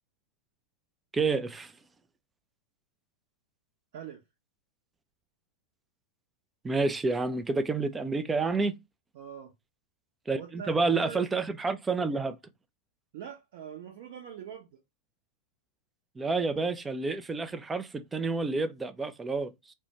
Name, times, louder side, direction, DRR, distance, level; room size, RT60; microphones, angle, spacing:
voice 1, 1.1-1.7 6.6-8.7 10.3-12.4 16.2-19.5, right 3 dB, 15° right, 0.4 m, -29 dB
voice 2, 9.1-9.5 10.3-11.5 13.1-14.8, right 8 dB, 50° right, 0.7 m, -43 dB
4.2 x 2.3 x 2.9 m
figure-of-eight pair, 90°, 0 cm